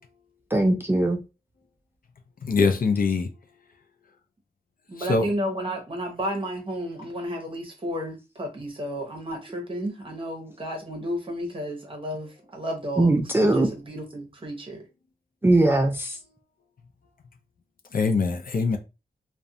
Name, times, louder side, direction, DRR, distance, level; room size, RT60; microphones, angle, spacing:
voice 1, 0.5-1.2 13.0-13.7 15.4-16.1, right 2 dB, 15° right, 0.3 m, -20 dB
voice 2, 2.4-3.3 5.0-5.3 17.9-18.8, left 4 dB, 60° left, 0.5 m, -23 dB
voice 3, 4.9-13.1 13.4-14.8, equal, 30° right, 0.8 m, -32 dB
2.4 x 2.2 x 2.6 m
wide cardioid pair, 125°, 17 cm